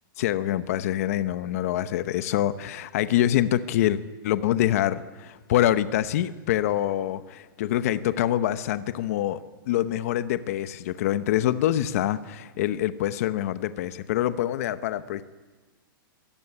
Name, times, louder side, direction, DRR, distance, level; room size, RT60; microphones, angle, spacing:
voice 1, 0.2-9.4 9.7-15.2, left 12 dB, 40° left, 12 dB, 0.9 m, -25 dB
24.5 x 17.5 x 9.9 m, 1.3 s
hypercardioid pair, 170°, 12 cm